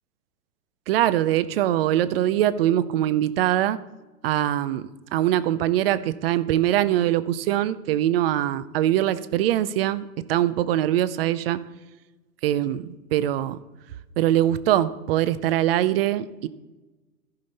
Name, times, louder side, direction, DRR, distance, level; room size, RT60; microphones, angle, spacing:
voice 1, 0.9-3.8 4.2-11.6 12.4-13.6 14.2-16.5, right 12 dB, 40° right, 16 dB, 0.5 m, -23 dB
14.5 x 5.1 x 4.1 m, 1.1 s
hypercardioid pair, 125°, 48 cm